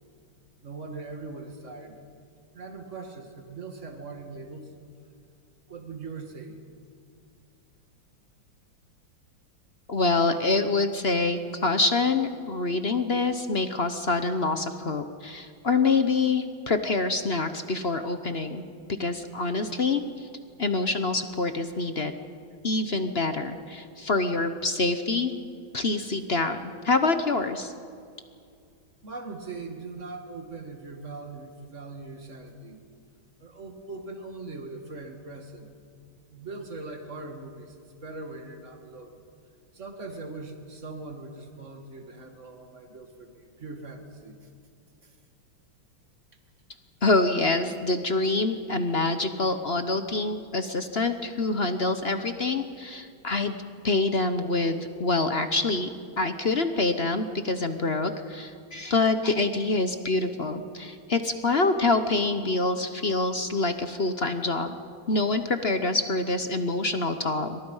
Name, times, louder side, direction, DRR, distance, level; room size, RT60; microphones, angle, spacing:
voice 1, 0.6-2.0 2.5-4.7 5.7-6.6 29.0-32.8 33.4-35.7 36.3-39.2 39.7-44.5 45.0-45.2, right 3 dB, 35° right, 4 dB, 2.5 m, -41 dB
voice 2, 9.9-18.6 19.0-20.3 20.6-22.1 22.6-25.3 25.7-27.7 47.0-53.5 53.8-55.9 56.2-64.7 65.1-67.6, left 3 dB, 40° left, 8 dB, 0.9 m, -26 dB
28.0 x 25.5 x 5.6 m, 2.4 s
omnidirectional pair, 2.2 m